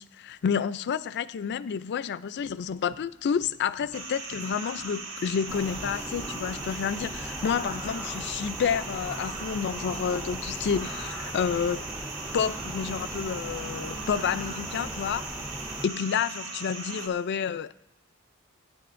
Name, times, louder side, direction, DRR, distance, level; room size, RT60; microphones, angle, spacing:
voice 1, 0.0-11.8 12.3-15.4 15.8-17.7, left 7 dB, 55° left, 0.4 m, -29 dB
sound 1, 2.4-16.7, right 1 dB, 45° right, 1.2 m, -58 dB
sound 2, 3.9-17.1, right 3 dB, 90° right, 1.8 m, -38 dB
sound 3, 5.5-15.9, equal, 5° right, 0.5 m, -39 dB
23.5 x 9.5 x 2.5 m
head